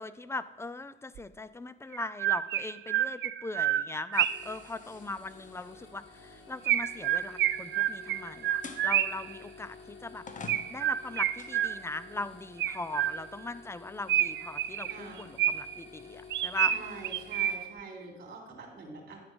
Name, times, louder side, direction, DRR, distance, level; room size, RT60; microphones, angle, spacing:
voice 1, 0.0-10.2 10.7-16.7, left 2 dB, 15° left, 15 dB, 0.5 m, -40 dB
Chirp tweet, 1.2-1.3 1.9-4.6 6.7-9.3 10.5-12.1 12.6-13.5 14.1-15.8 16.3-17.8, right 12 dB, 65° right, 0.5 m, -29 dB
sound 1, 4.1-7.2 8.6-8.9 9.7-9.8 10.3-11.6, left 4 dB, 40° left, 1.1 m, -48 dB
sound 2, 4.3-17.6, left 4 dB, 70° left, 2.0 m, -52 dB
voice 2, 14.9-15.4 16.7-19.2, right 3 dB, 50° right, 0 dB, 3.6 m, -45 dB
11.0 x 6.9 x 5.3 m, 1.2 s
cardioid pair, 90°, 20 cm